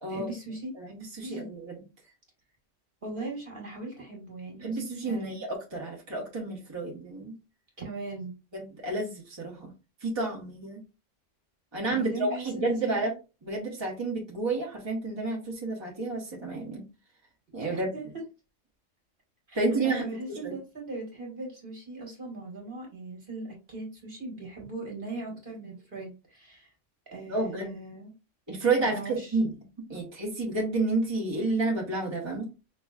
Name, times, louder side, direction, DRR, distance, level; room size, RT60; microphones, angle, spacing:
voice 1, 0.1-0.7 1.2-1.5 3.0-5.4 7.8-8.3 11.9-13.0 17.7-18.1 19.5-19.6 19.8-26.7 27.1-28.1 28.8-29.4, right 2 dB, 45° right, -2 dB, 1.8 m, -39 dB
voice 2, 0.8-1.8 4.6-7.4 8.5-9.7 10.0-10.8 11.7-13.1 13.4-16.8 17.5-17.9 19.5-20.5 27.3-27.7 28.5-29.5 29.9-32.5, right 3 dB, 20° right, -3 dB, 1.4 m, -30 dB
5.5 x 3.0 x 2.4 m, 0.29 s
omnidirectional pair, 1.3 m